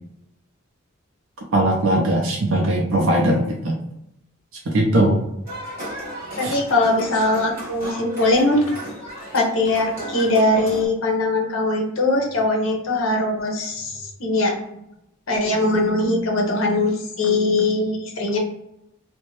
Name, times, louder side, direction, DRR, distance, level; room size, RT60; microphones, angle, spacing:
voice 1, 1.5-3.7 4.7-5.3 6.4-6.6, right 1 dB, 80° right, -2 dB, 0.5 m, -19 dB
sound 1, 5.5-10.9, equal, 15° right, 1.3 m, -34 dB
voice 2, 6.4-8.6 9.3-14.8 15.3-18.4, left 2 dB, 70° left, 0 dB, 0.7 m, -21 dB
2.5 x 2.1 x 3.1 m, 0.82 s
head